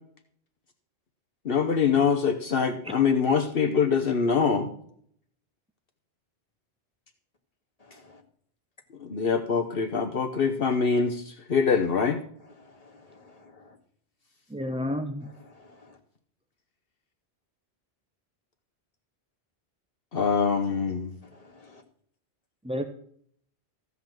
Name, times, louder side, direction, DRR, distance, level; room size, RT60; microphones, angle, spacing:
voice 1, 1.4-4.7 9.0-12.2 20.1-21.1, left 6 dB, 65° left, 1.2 m, -24 dB
voice 2, 7.8-8.2 12.6-13.8 15.4-16.0 21.3-21.8, left 3 dB, 35° left, 2.1 m, -54 dB
voice 3, 14.5-15.3 22.6-22.9, left 1 dB, 5° right, 0.6 m, -30 dB
15.0 x 5.6 x 7.6 m
omnidirectional pair, 1.1 m